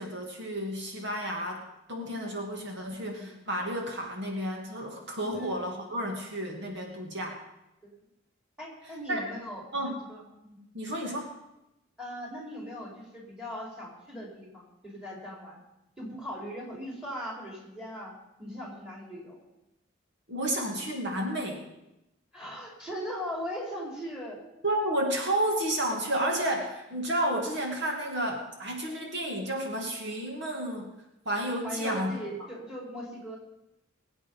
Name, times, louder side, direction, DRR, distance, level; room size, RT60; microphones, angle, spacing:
voice 1, 0.0-7.4 9.1-9.2 9.7-10.0 10.7-11.3 20.3-21.6 24.6-30.9 31.3-32.2, right 1 dB, 60° right, 1 dB, 2.5 m, -31 dB
voice 2, 2.9-3.3 5.3-5.6 7.8-8.0 8.6-10.6 12.0-15.6 16.0-18.1 18.4-19.4 22.3-24.4 31.6-33.4, equal, 5° right, -2 dB, 4.3 m, -39 dB
21.5 x 8.8 x 5.5 m, 0.91 s
head